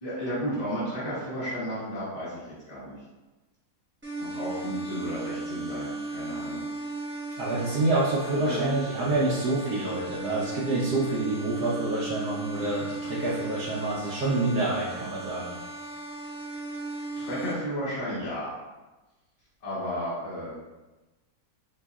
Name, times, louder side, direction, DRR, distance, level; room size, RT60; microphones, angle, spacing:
voice 1, 0.0-2.4 2.7-2.9 4.2-6.6 8.4-8.9 17.2-18.5 19.6-20.5, equal, 25° left, -11 dB, 1.5 m, -33 dB
sound 1, 4.0-17.5, right 2 dB, 10° right, 1.0 m, -36 dB
voice 2, 7.4-15.6, right 2 dB, 80° right, -7 dB, 1.3 m, -27 dB
5.1 x 3.2 x 2.3 m, 1.1 s
omnidirectional pair, 1.7 m